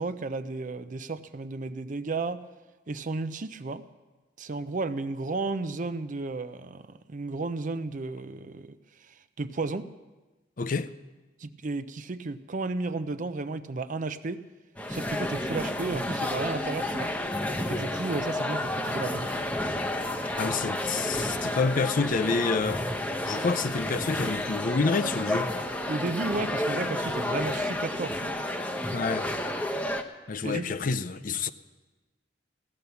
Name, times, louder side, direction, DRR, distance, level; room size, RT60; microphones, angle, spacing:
voice 1, 0.0-2.4 2.9-3.8 4.4-9.9 11.4-14.4 14.9-17.1 17.7-19.4 25.9-28.3 30.4-30.7, right 3 dB, 45° right, 0.5 m, -33 dB
voice 2, 10.6-10.9 20.4-22.8 23.3-25.5 28.9-29.3 30.3-31.5, left 4 dB, 45° left, 0.5 m, -28 dB
sound 1, 14.8-30.0, left 1 dB, 10° left, 0.8 m, -31 dB
16.0 x 10.5 x 6.9 m
head